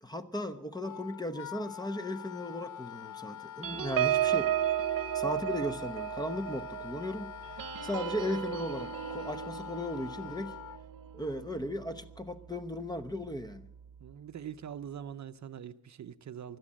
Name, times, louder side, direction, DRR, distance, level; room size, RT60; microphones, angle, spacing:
voice 1, 0.0-4.5 5.1-10.6 11.1-13.7, left 1 dB, 10° left, 0.9 m, -37 dB
Wind instrument woodwind instrument, 0.8-10.8, left 11 dB, 65° left, 0.5 m, -45 dB
sound 1, 3.6-12.6 13.0-13.2 13.5-13.8, right 11 dB, 90° right, 0.8 m, -34 dB
voice 2, 14.0-16.6, right 9 dB, 55° right, 0.7 m, -43 dB
17.0 x 12.0 x 6.4 m
wide cardioid pair, 125°, 33 cm